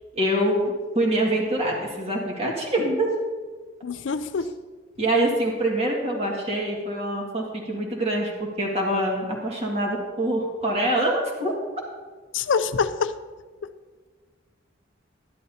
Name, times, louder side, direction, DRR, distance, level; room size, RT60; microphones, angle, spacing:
voice 1, 0.1-3.1 5.0-11.5, right 1 dB, 35° right, -1 dB, 1.9 m, -25 dB
voice 2, 3.8-4.5 12.3-13.2 13.6-13.7, left 5 dB, 85° left, 12 dB, 0.5 m, -25 dB
12.0 x 11.5 x 2.8 m, 1.4 s
head